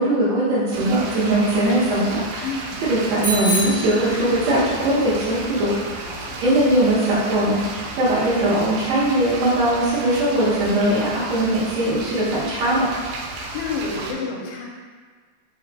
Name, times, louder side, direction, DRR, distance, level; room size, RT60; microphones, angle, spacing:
voice 1, 0.0-2.5 2.8-6.0 6.4-7.6 8.0-12.9, right 1 dB, 70° right, -9 dB, 1.9 m, -20 dB
sound 1, 0.7-14.1, right 2 dB, 85° right, 2.2 m, -33 dB
voice 2, 2.4-2.8 6.0-6.4 13.3-14.6, left 4 dB, 85° left, -2 dB, 2.2 m, -30 dB
Bicycle bell, 3.2-4.8, equal, 65° left, 0.7 m, -27 dB
5.0 x 2.2 x 4.0 m, 1.5 s
omnidirectional pair, 3.8 m